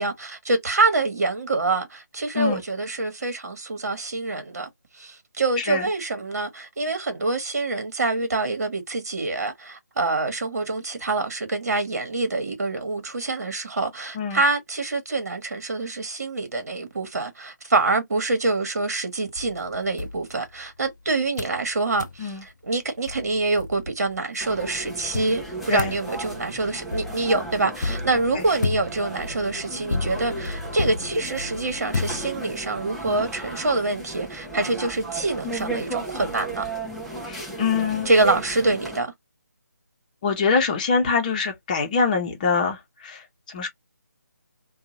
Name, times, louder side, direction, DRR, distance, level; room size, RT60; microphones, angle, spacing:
voice 1, 0.0-4.7 4.9-36.7 38.0-39.1, right 3 dB, 55° right, 1.2 m, -25 dB
voice 2, 5.6-5.9 14.1-14.4 22.2-22.4 25.7-25.9 28.3-28.4 37.3-38.1 40.2-43.7, left 5 dB, 25° left, 0.9 m, -24 dB
sound 1, 19.4-20.9 21.4-21.6 22.0-22.2 22.8-22.9 23.1-24.2 25.1-32.7, left 3 dB, 80° left, 0.4 m, -32 dB
sound 2, 24.4-39.0, right 2 dB, ahead, 0.5 m, -35 dB
2.8 x 2.3 x 2.7 m
figure-of-eight pair, 155°, 10 cm